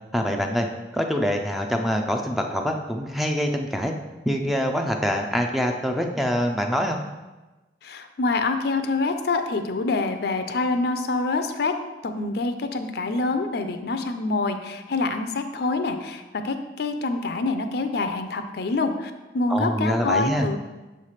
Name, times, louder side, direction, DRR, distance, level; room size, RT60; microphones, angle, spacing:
voice 1, 0.1-0.7 0.9-3.9 4.3-7.0 19.5-20.5, equal, ahead, 3 dB, 0.4 m, -25 dB
voice 2, 7.8-11.7 12.0-20.6, left 3 dB, 60° left, 8 dB, 0.5 m, -26 dB
6.7 x 3.2 x 5.6 m, 1.1 s
head